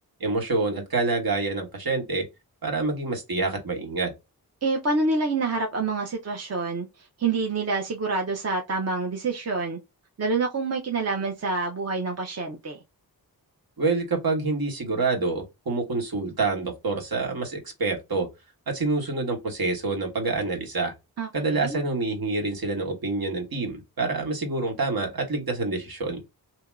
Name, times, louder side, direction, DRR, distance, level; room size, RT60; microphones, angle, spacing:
voice 1, 0.2-2.2 2.6-4.1 13.8-18.3 18.7-20.9 21.3-26.2, right 3 dB, 65° right, 1.5 m, -27 dB
voice 2, 4.6-6.9 7.2-9.8 10.2-12.8 21.2-21.8, right 3 dB, 40° right, 0.7 m, -27 dB
2.9 x 2.7 x 3.4 m
wide cardioid pair, 140°, 38 cm